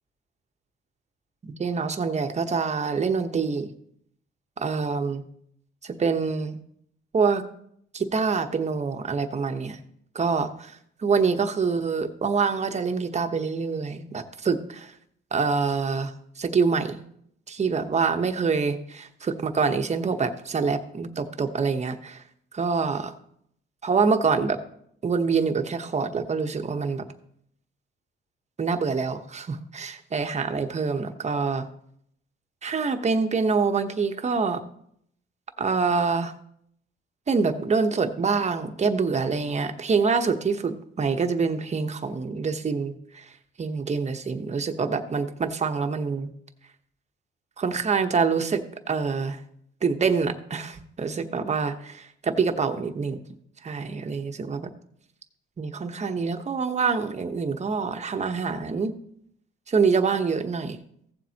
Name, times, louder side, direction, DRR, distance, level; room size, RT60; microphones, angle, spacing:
voice 1, 1.4-3.7 4.6-5.2 5.8-6.6 7.1-7.4 7.9-9.8 10.1-14.9 15.3-17.0 17.5-22.2 22.5-23.1 23.8-24.6 25.0-27.0 28.6-31.7 32.6-34.6 35.6-36.3 37.3-43.3 43.6-46.3 47.6-49.4 49.8-53.2 53.6-54.7 55.6-58.9 59.7-60.8, right 5 dB, 35° right, 7 dB, 1.0 m, -26 dB
15.5 x 7.4 x 2.9 m, 0.70 s
cardioid pair, 90°, 20 cm